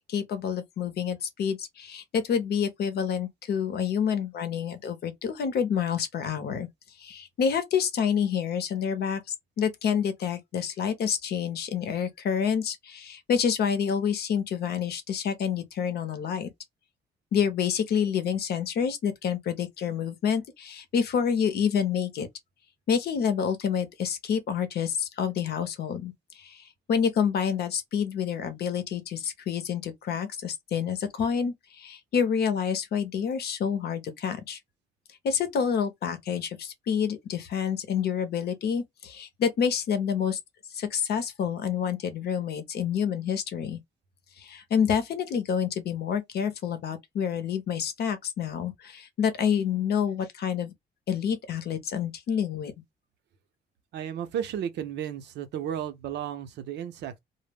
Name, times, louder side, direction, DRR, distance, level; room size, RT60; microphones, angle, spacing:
voice 1, 0.1-6.7 7.0-9.2 9.6-16.5 17.3-22.3 22.9-34.6 35.2-40.4 40.7-43.8 44.4-50.7 51.1-52.7, left 7 dB, 65° left, 0.7 m, -28 dB
voice 2, 53.9-57.2, right 9 dB, 80° right, 0.6 m, -33 dB
2.0 x 2.0 x 3.3 m
cardioid pair, 100°, 18 cm